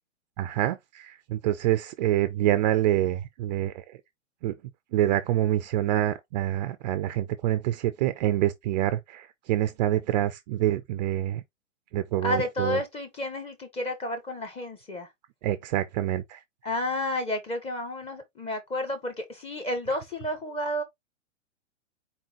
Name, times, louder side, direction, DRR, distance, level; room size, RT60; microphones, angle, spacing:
voice 1, 0.4-3.8 4.4-4.5 4.9-11.4 11.9-12.8 15.4-16.4, right 13 dB, 35° right, 0.4 m, -26 dB
voice 2, 12.2-15.1 16.6-20.8, left 1 dB, 15° left, 1.2 m, -31 dB
4.3 x 3.7 x 2.9 m
hypercardioid pair, 130°, 38 cm